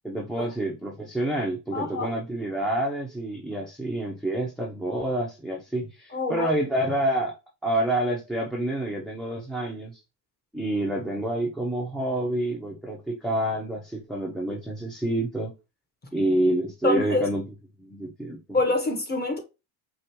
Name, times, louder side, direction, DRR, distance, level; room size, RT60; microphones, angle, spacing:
voice 1, 0.0-7.4 7.6-10.0 10.5-15.5 16.1-17.4 17.8-18.4, right 1 dB, ahead, 0.7 m, -28 dB
voice 2, 1.7-2.1 6.1-6.5 16.8-17.2 18.5-19.4, left 2 dB, 20° left, 1.1 m, -25 dB
5.0 x 2.5 x 3.0 m
cardioid pair, 130°, 47 cm